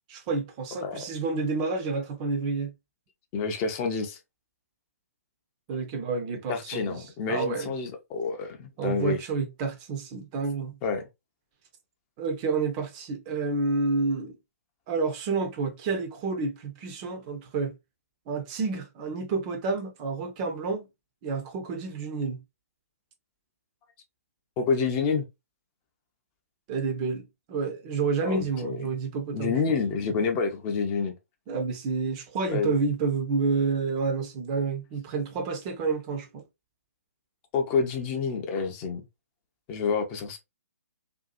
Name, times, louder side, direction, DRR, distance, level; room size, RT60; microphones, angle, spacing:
voice 1, 0.1-2.7 5.7-7.0 7.3-7.7 8.8-10.7 12.2-14.4 14.9-17.8 18.3-20.9 21.2-22.4 26.7-27.2 27.5-29.5 31.5-36.4, right 4 dB, 25° right, 0.5 m, -29 dB
voice 2, 3.3-4.2 6.5-9.2 10.8-11.0 24.6-25.3 28.2-28.8 29.3-31.1 32.5-32.7 37.5-39.0 39.7-40.4, left 5 dB, 25° left, 0.5 m, -28 dB
2.6 x 2.3 x 2.3 m
figure-of-eight pair, 125°, 8 cm